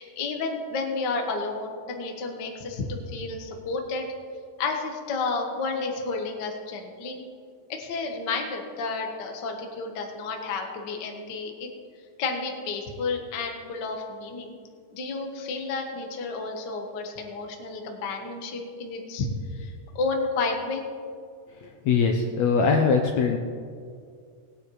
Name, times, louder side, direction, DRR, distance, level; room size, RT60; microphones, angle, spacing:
voice 1, 0.0-4.1 4.6-7.2 7.7-11.7 12.2-14.5 14.9-19.3 19.5-20.8, left 4 dB, 60° left, 2 dB, 1.1 m, -31 dB
voice 2, 21.8-23.4, left 5 dB, 80° left, 2 dB, 1.7 m, -21 dB
19.5 x 9.4 x 3.2 m, 2.1 s
omnidirectional pair, 3.9 m